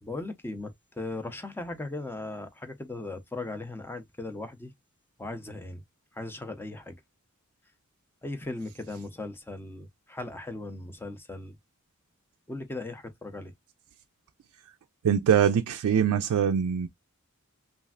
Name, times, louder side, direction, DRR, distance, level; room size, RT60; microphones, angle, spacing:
voice 1, 0.0-4.7 5.2-5.8 6.1-7.0 8.2-11.5 12.5-13.5, left 2 dB, 10° left, 0.5 m, -38 dB
voice 2, 15.0-16.9, right 8 dB, 90° right, 0.3 m, -23 dB
3.2 x 2.4 x 2.3 m
head